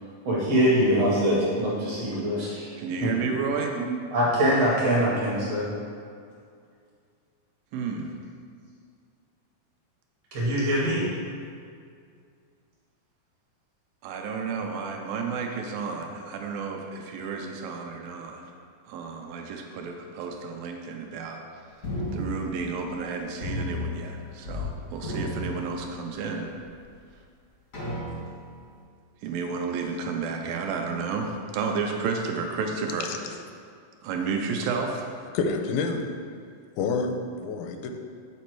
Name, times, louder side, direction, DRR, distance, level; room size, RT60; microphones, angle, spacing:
voice 1, 0.3-2.7 3.0-3.1 3.8-5.7 10.3-11.0, equal, 60° right, -6 dB, 1.8 m, -23 dB
voice 2, 2.8-3.8 7.7-8.1 14.0-18.5 18.9-21.4 22.1-26.5 29.2-33.3 34.0-35.1, right 5 dB, 80° right, 2 dB, 2.3 m, -31 dB
sound 1, 21.8-23.1 23.4-24.7 25.0-26.3 26.8-26.9 27.7-28.6, left 1 dB, 65° left, 0.7 m, -33 dB
voice 3, 35.3-36.3 36.8-38.0, left 4 dB, 85° left, 5 dB, 2.4 m, -28 dB
8.1 x 4.2 x 4.5 m, 2.2 s
omnidirectional pair, 4.2 m